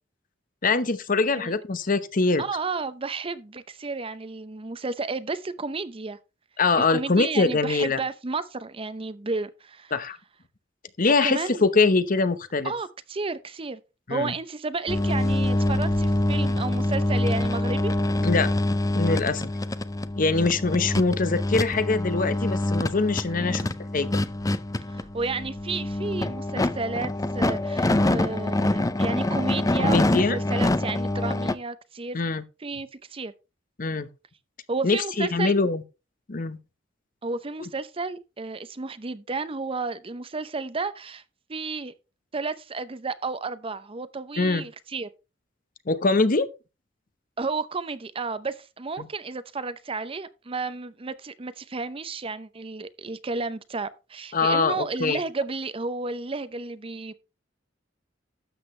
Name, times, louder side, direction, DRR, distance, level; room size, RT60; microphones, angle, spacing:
voice 1, 0.6-2.4 6.6-8.0 9.9-10.2 11.0-12.7 14.1-14.3 18.2-18.5 18.9-19.5 20.2-23.7 23.9-24.2 29.8-30.4 32.1-32.4 33.8-34.1 34.8-35.8 36.3-36.6 37.6-37.7 44.4-44.6 45.9-46.5 54.3-55.2, left 3 dB, 45° left, 0.9 m, -23 dB
voice 2, 2.4-6.2 6.8-9.9 11.2-11.7 12.6-13.8 14.1-17.9 23.4-23.7 24.9-32.2 32.6-33.3 34.7-35.5 37.2-41.2 41.5-41.9 42.3-45.1 47.4-57.1, right 3 dB, 30° right, 0.6 m, -32 dB
sound 1, 14.9-31.5, left 1 dB, 20° left, 0.5 m, -25 dB
12.5 x 8.1 x 3.2 m
head